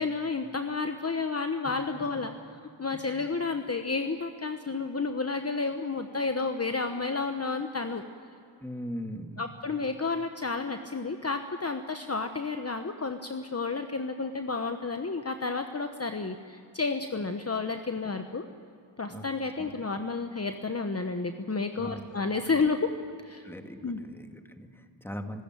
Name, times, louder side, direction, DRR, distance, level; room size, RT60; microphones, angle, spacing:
voice 1, 0.0-2.3 2.8-8.0 9.4-18.5 19.0-22.9 23.2-23.4 23.8-24.0, left 4 dB, 30° left, 7 dB, 1.2 m, -31 dB
voice 2, 2.9-3.3 8.6-9.4 19.1-19.3 19.6-19.7 21.8-22.0 23.4-25.4, equal, 5° left, 5 dB, 2.1 m, -40 dB
24.5 x 13.5 x 9.1 m, 2.6 s
cardioid pair, 55°, 47 cm